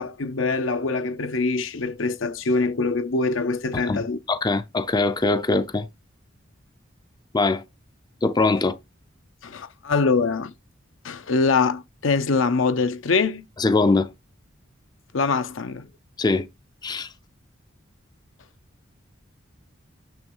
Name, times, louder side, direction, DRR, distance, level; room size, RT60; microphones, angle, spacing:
voice 1, 0.0-4.2 9.4-10.5 11.0-13.5 15.1-15.9, left 4 dB, 75° left, 0.7 m, -23 dB
voice 2, 3.9-5.9 7.3-7.6 8.2-8.8 13.6-14.1 16.2-16.5 16.8-17.1, left 3 dB, 20° left, 0.4 m, -22 dB
9.0 x 3.2 x 5.4 m
head